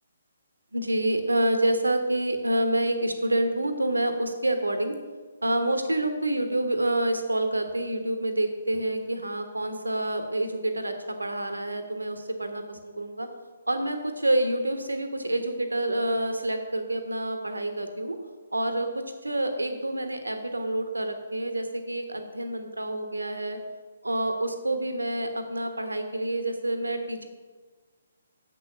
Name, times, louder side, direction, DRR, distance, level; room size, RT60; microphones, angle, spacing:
voice 1, 0.7-5.0 5.4-13.3 13.7-18.2 18.5-23.6 24.0-27.3, right 1 dB, 80° right, 7 dB, 1.2 m, -28 dB
7.5 x 6.3 x 6.8 m, 1.4 s
figure-of-eight pair, 135°, 0 cm